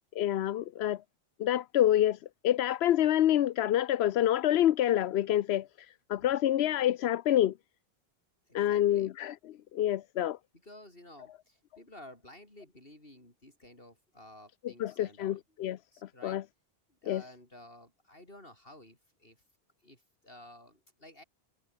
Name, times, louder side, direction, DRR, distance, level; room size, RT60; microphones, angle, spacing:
voice 1, 0.2-1.0 1.4-2.2 2.4-7.5 8.5-10.4 14.6-15.8 16.2-16.4 17.1-17.2, left 12 dB, 90° left, 0.9 m, -27 dB
voice 2, 8.5-9.1 10.6-15.4 15.9-16.4 17.0-19.4 19.8-21.2, left 1 dB, 65° left, 6.9 m, -53 dB
omnidirectional pair, 1.0 m